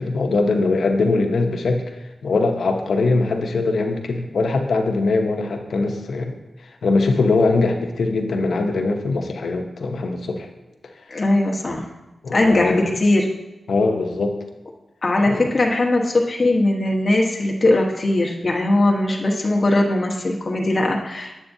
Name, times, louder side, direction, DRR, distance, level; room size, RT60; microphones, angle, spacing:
voice 1, 0.0-1.8 2.2-6.4 6.8-10.5 12.2-12.9 13.7-14.4 15.3-15.5, left 3 dB, 90° left, 4 dB, 0.8 m, -21 dB
voice 2, 11.1-11.8 12.3-13.3 15.0-21.4, left 2 dB, 45° left, 0 dB, 1.2 m, -19 dB
8.3 x 8.0 x 2.7 m, 1.0 s
wide cardioid pair, 80°, 0 cm